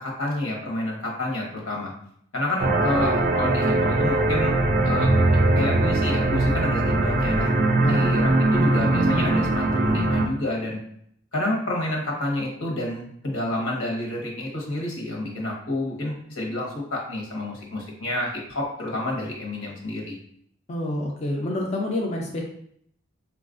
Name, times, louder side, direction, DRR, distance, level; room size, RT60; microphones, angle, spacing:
voice 1, 0.0-1.9 2.3-4.6 4.8-5.1 5.5-7.5 7.8-10.8 11.3-20.2, left 1 dB, 80° left, -1 dB, 1.0 m, -29 dB
sound 1, 2.6-10.3, right 2 dB, 40° right, 0.3 m, -21 dB
voice 2, 7.8-8.2 20.7-22.4, left 1 dB, 35° left, -1 dB, 0.4 m, -27 dB
4.0 x 2.3 x 2.5 m, 0.68 s
head